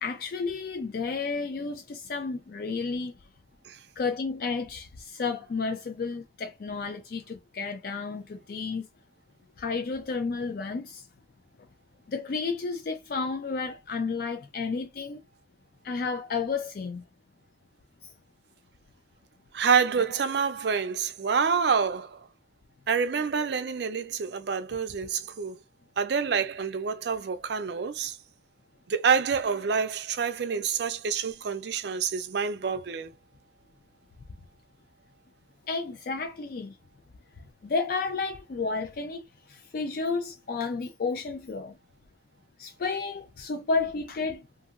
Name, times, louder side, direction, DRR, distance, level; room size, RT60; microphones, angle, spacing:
voice 1, 0.0-3.1 4.0-8.9 9.6-11.0 12.1-15.2 15.8-17.0 35.7-36.7 37.6-39.2 39.5-41.7 42.6-44.4, left 4 dB, 50° left, 0.3 m, -31 dB
voice 2, 19.5-22.2 22.9-25.6 26.0-28.2 28.9-33.1, right 6 dB, 60° right, 0.4 m, -27 dB
2.8 x 2.6 x 2.4 m
head